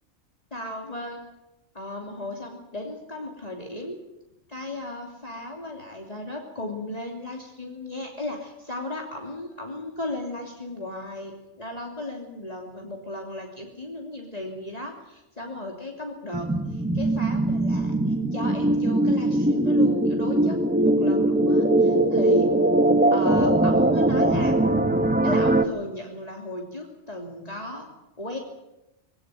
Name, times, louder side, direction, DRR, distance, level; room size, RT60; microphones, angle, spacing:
voice 1, 0.5-1.2 1.7-4.0 4.5-17.9 18.3-22.5 23.1-24.6 25.2-27.9 28.2-28.4, left 1 dB, 35° left, 0 dB, 3.1 m, -35 dB
sound 1, 16.3-25.7, right 1 dB, 10° right, 1.1 m, -21 dB
21.0 x 18.0 x 9.1 m, 0.93 s
omnidirectional pair, 1.2 m